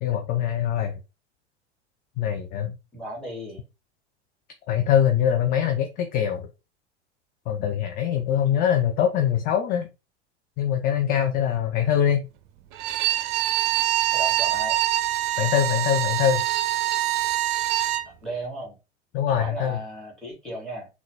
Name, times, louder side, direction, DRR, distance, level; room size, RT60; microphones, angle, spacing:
voice 1, 0.0-1.0 2.2-2.8 4.7-6.5 7.5-9.9 10.6-12.3 15.4-16.4 19.1-19.8, left 9 dB, 25° left, 5 dB, 0.4 m, -23 dB
voice 2, 2.9-3.6 14.1-14.8 18.2-18.7 19.3-20.9, right 1 dB, ahead, -3 dB, 2.0 m, -35 dB
Bowed string instrument, 12.7-18.1, right 14 dB, 45° right, 0.5 m, -24 dB
3.8 x 2.3 x 3.2 m, 0.28 s
figure-of-eight pair, 85°, 34 cm